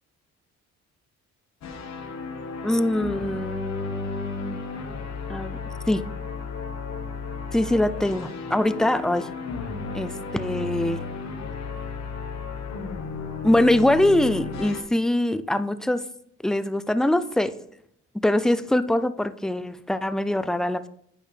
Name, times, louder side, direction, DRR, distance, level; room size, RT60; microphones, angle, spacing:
sound 1, 1.6-14.8, left 5 dB, 60° left, 1.2 m, -34 dB
voice 1, 2.6-4.6 5.3-5.6 5.9-6.0 7.5-9.3 9.9-11.0 13.4-16.0 16.4-17.6 18.2-20.9, left 1 dB, ahead, 13 dB, 0.4 m, -23 dB
8.7 x 5.4 x 3.3 m, 0.71 s
cardioid pair, 90°, 30 cm